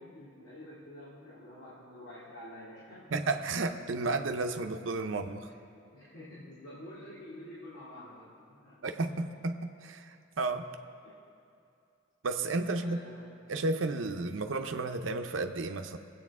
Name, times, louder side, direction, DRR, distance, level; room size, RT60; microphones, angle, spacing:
voice 1, 0.0-3.1 5.9-8.8 12.7-13.4, left 1 dB, 80° left, -8 dB, 2.3 m, -48 dB
voice 2, 3.1-5.5 8.8-10.7 12.2-13.0 13.5-16.0, right 3 dB, 80° right, 6 dB, 0.6 m, -32 dB
21.5 x 8.4 x 3.6 m, 2.5 s
head